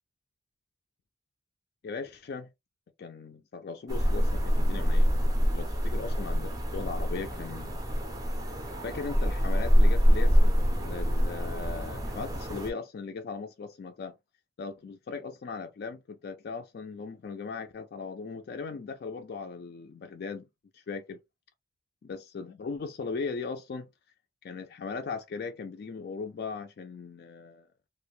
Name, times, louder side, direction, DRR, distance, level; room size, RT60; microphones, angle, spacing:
voice 1, 1.8-2.5 3.0-7.9 8.8-14.2 14.6-20.5 20.7-21.2 22.0-23.9 24.4-27.7, left 4 dB, 50° left, 0.3 m, -38 dB
sound 1, 3.9-12.7, equal, 20° right, 0.4 m, -25 dB
2.5 x 2.1 x 3.0 m
head